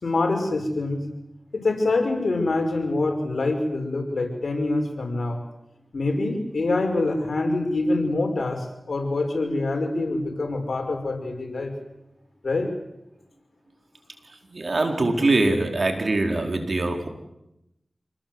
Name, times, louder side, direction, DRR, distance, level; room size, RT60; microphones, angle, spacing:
voice 1, 0.0-1.0 1.5-5.4 5.9-11.7 12.4-12.7, left 2 dB, 75° left, 4 dB, 5.5 m, -25 dB
voice 2, 14.4-17.1, right 2 dB, 65° right, 4 dB, 4.4 m, -23 dB
27.5 x 20.0 x 8.0 m, 0.88 s
cardioid pair, 50°, 0 cm